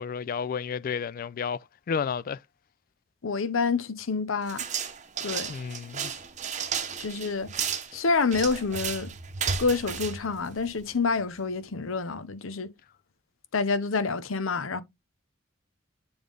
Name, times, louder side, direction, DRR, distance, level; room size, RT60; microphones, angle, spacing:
voice 1, 0.0-2.4 5.5-6.1, left 6 dB, 45° left, 0.3 m, -32 dB
voice 2, 3.2-4.6 5.2-5.5 7.0-7.5 7.9-9.1 9.6-12.7 13.5-14.8, left 4 dB, 90° left, 0.8 m, -27 dB
sound 1, 4.5-11.0, right 6 dB, 35° right, 0.8 m, -33 dB
7.1 x 3.4 x 3.8 m
head